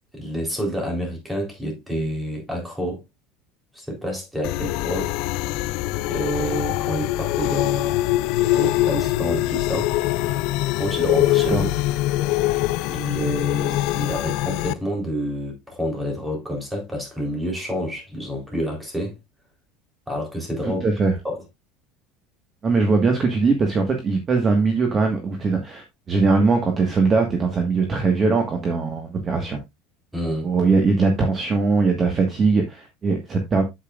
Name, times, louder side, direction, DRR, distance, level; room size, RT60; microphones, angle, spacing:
voice 1, 0.1-3.0 3.7-5.1 6.1-8.0 8.5-9.9 10.8-11.7 12.9-19.2 20.1-20.8 21.2-21.4 30.1-30.5, equal, 5° right, 3.8 m, -28 dB
sound 1, 4.4-14.7, left 16 dB, 65° left, 0.5 m, -23 dB
voice 2, 20.6-21.1 22.6-29.6 30.4-33.6, right 4 dB, 25° right, 1.6 m, -21 dB
8.7 x 8.2 x 2.5 m
cardioid pair, 150°, 0 cm